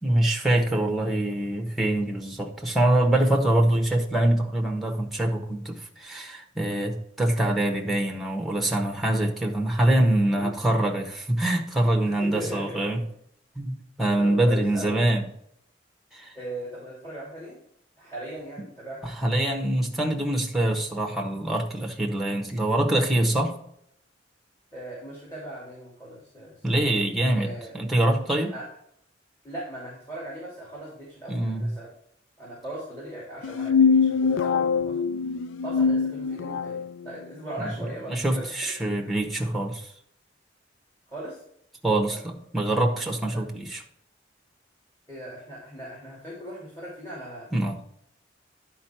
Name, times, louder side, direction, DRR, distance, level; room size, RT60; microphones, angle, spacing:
voice 1, 0.0-13.0 13.6-15.2 16.1-16.3 19.0-23.5 26.6-28.5 31.3-31.7 37.6-37.7 38.1-39.9 41.8-43.8 47.5-47.8, right 1 dB, ahead, 2 dB, 1.2 m, -24 dB
voice 2, 12.0-12.9 14.2-15.1 16.3-17.6 18.0-19.1 24.7-26.8 27.3-27.7 28.5-28.6 29.4-31.9 32.4-35.0 35.6-38.4 39.0-39.1 41.1-41.4 42.1-42.2 45.1-47.5, right 1 dB, 15° left, -6 dB, 2.8 m, -39 dB
sound 1, 33.4-36.9, left 5 dB, 80° left, 0.4 m, -23 dB
10.5 x 4.6 x 4.4 m, 0.70 s
head